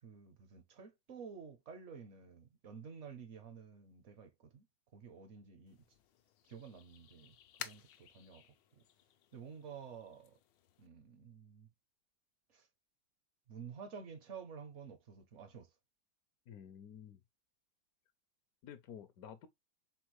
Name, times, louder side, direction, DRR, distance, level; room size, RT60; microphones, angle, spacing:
voice 1, 0.0-4.7 4.9-5.8 6.4-8.5 8.8-8.9 9.3-10.4 10.8-11.7 12.5-12.7 13.5-15.7, right 6 dB, 60° right, 0.8 m, -51 dB
sound 1, 5.7-10.9, left 10 dB, 85° left, 1.3 m, -54 dB
voice 2, 16.5-17.2 18.6-19.5, left 8 dB, 70° left, 0.9 m, -51 dB
4.4 x 4.0 x 3.0 m
omnidirectional pair, 1.9 m